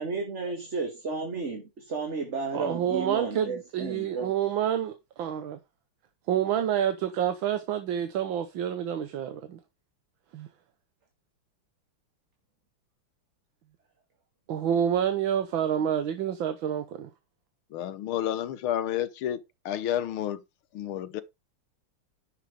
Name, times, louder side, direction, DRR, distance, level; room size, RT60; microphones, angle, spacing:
voice 1, 0.0-4.3, right 4 dB, 35° right, 1.9 m, -33 dB
voice 2, 2.5-5.6 6.3-9.6 10.3-10.5 14.5-17.1, right 9 dB, 70° right, 1.6 m, -28 dB
voice 3, 17.7-19.4 19.6-20.4 20.7-21.2, left 11 dB, 75° left, 1.7 m, -30 dB
10.5 x 5.9 x 4.9 m
omnidirectional pair, 2.4 m